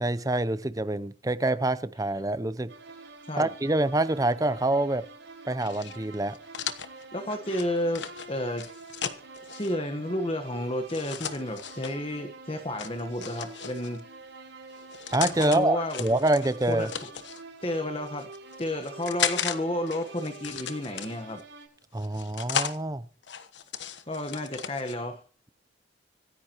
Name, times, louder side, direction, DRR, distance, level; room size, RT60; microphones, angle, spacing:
voice 1, 0.0-2.7 3.4-5.0 5.5-6.4 15.1-16.9 21.9-23.0, right 2 dB, 20° right, 0.6 m, -26 dB
sound 1, 2.7-21.7, right 3 dB, 75° right, 6.2 m, -47 dB
sound 2, 5.6-9.7 10.9-12.0 12.8-14.0 14.7-15.6 15.9-17.4 18.1-19.6 19.9-21.4 22.0-22.8 23.2-24.9, left 8 dB, 70° left, 1.1 m, -35 dB
voice 2, 7.1-8.6 9.5-14.0 15.4-16.1 16.7-16.9 17.6-18.3 18.6-21.4 24.1-25.2, left 1 dB, 30° left, 1.2 m, -31 dB
25.5 x 9.7 x 3.0 m
head